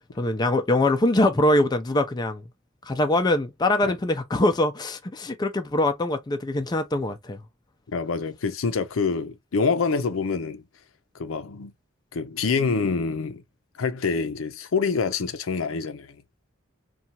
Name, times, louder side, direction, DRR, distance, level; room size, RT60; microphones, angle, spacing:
voice 1, 0.1-2.4 2.8-7.4, left 1 dB, 20° left, 0.4 m, -23 dB
voice 2, 7.9-10.6 11.1-11.7 12.1-13.4 13.8-16.2, left 4 dB, 80° left, 0.5 m, -26 dB
2.8 x 2.3 x 2.7 m
head